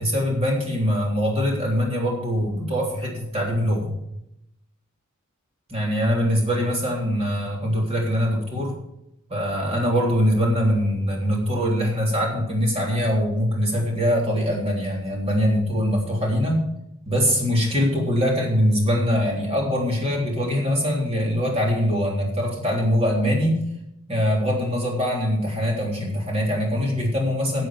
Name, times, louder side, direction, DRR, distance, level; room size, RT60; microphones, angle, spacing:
voice 1, 0.0-4.0 5.7-8.8 9.3-16.7 17.0-23.7 24.1-27.7, equal, 30° right, -2 dB, 3.5 m, -23 dB
11.0 x 8.2 x 6.2 m, 0.82 s
head